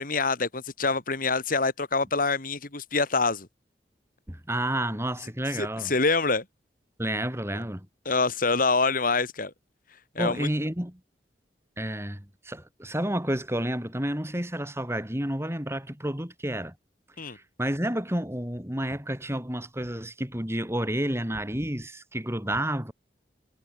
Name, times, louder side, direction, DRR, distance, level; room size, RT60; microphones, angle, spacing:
voice 1, 0.0-3.5 5.5-6.4 8.0-9.5 10.1-10.5 17.2-17.4, left 3 dB, 50° left, 2.7 m, -26 dB
voice 2, 4.3-5.9 7.0-7.9 10.2-11.0 11.8-16.7 17.2-22.9, right 1 dB, 15° right, 6.9 m, -30 dB
head